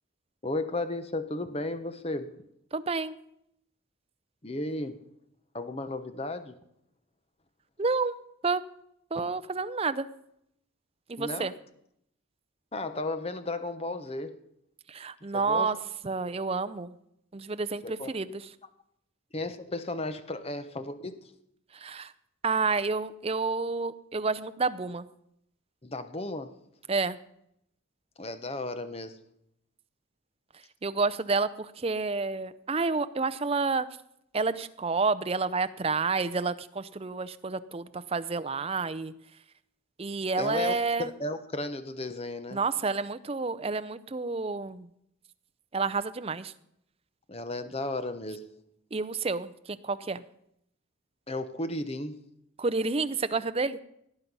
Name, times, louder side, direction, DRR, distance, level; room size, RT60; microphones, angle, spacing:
voice 1, 0.4-2.3 4.4-5.0 5.5-6.6 11.2-11.5 12.7-14.4 15.3-15.7 17.8-18.1 19.3-21.3 25.8-26.5 28.2-29.2 40.4-42.6 47.3-48.5 51.3-52.2, left 2 dB, 30° left, 10 dB, 0.9 m, -34 dB
voice 2, 2.7-3.2 7.8-8.2 8.4-8.6 9.1-10.1 11.1-11.5 14.9-15.8 16.0-16.9 17.3-18.5 21.7-22.1 22.4-25.1 26.9-27.2 30.8-33.9 34.3-39.1 40.0-41.1 42.5-44.9 45.7-46.5 48.9-50.2 52.6-53.8, right 4 dB, 30° right, 13 dB, 0.5 m, -29 dB
17.5 x 9.4 x 5.4 m, 0.76 s
head